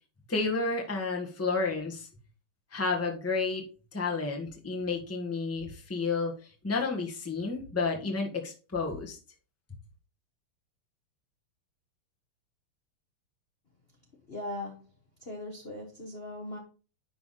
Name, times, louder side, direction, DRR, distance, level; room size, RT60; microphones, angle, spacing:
voice 1, 0.3-2.1 2.7-3.6 3.9-9.2, left 4 dB, 10° left, 1.3 m, -31 dB
voice 2, 14.3-14.8 15.2-16.6, left 1 dB, 30° left, 1.3 m, -39 dB
10.5 x 3.5 x 4.2 m
omnidirectional pair, 2.4 m